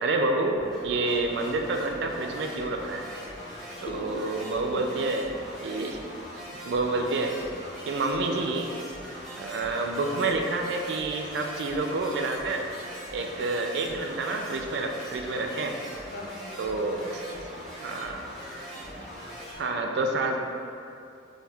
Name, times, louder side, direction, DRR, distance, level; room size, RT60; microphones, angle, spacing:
voice 1, 0.0-3.0 3.8-6.0 6.6-7.3 7.9-8.7 9.4-12.6 13.1-15.8 16.6-17.2 17.8-18.2 19.6-20.4, right 2 dB, 60° right, 3 dB, 0.3 m, -28 dB
sound 1, 0.5-19.6, equal, ahead, 1.1 m, -41 dB
voice 2, 16.1-17.9 18.9-19.0 19.7-19.8, left 2 dB, 55° left, -1 dB, 0.5 m, -44 dB
4.3 x 3.3 x 2.3 m, 2.6 s
head